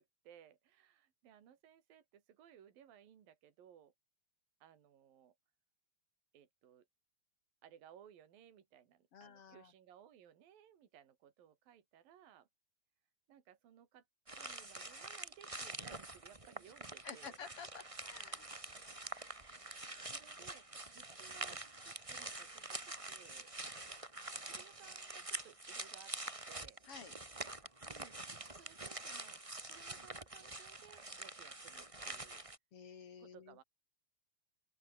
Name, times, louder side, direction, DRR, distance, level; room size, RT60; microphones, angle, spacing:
voice 1, 0.0-3.9 4.6-5.4 6.3-6.9 7.6-12.5 13.3-14.1 14.4-17.4 19.5-23.5 24.5-26.1 26.5-26.8 27.8-32.4 33.2-33.6, right 9 dB, 65° right, 4.2 m, -61 dB
voice 2, 9.1-9.7 17.0-18.4 26.8-27.1 32.7-33.6, left 6 dB, 40° left, 2.8 m, -52 dB
sound 1, 14.3-32.6, right 2 dB, 15° right, 1.0 m, -46 dB
open air
omnidirectional pair, 4.4 m